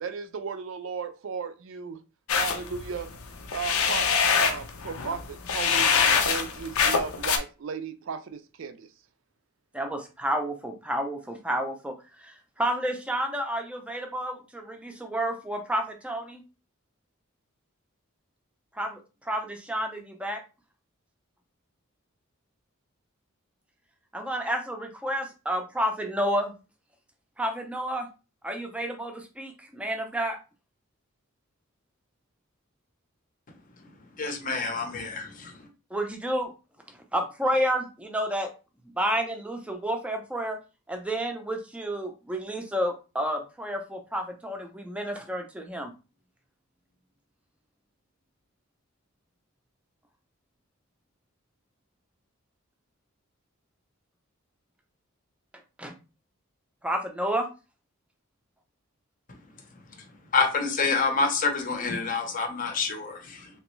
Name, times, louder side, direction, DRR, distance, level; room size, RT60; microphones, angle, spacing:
voice 1, 0.0-2.0 2.3-3.1 3.5-4.1 4.4-5.9 6.2-8.9, right 5 dB, 65° right, 0.4 m, -35 dB
sound 1, 2.3-7.4, left 6 dB, 85° left, 0.6 m, -24 dB
voice 2, 9.7-16.4 18.7-20.4 24.1-26.5 27.4-28.1 28.4-30.4 35.9-36.5 37.1-38.5 38.9-40.6 40.9-45.9 55.8-55.9 56.8-57.5, equal, 5° right, 0.5 m, -30 dB
voice 3, 34.2-35.5 60.3-63.5, left 4 dB, 40° left, 0.7 m, -27 dB
3.4 x 2.9 x 3.0 m
head